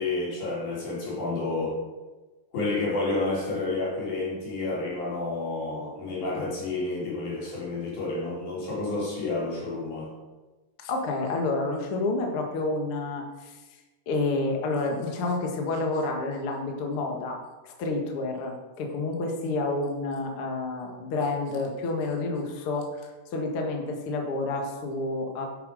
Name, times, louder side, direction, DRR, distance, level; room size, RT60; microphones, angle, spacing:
voice 1, 0.0-1.8 2.5-10.1, left 2 dB, 50° left, -5 dB, 4.5 m, -30 dB
voice 2, 10.8-13.6 14.1-17.4 17.6-25.4, left 2 dB, 70° left, 2 dB, 1.3 m, -29 dB
10.0 x 7.8 x 4.9 m, 1.2 s
omnidirectional pair, 4.9 m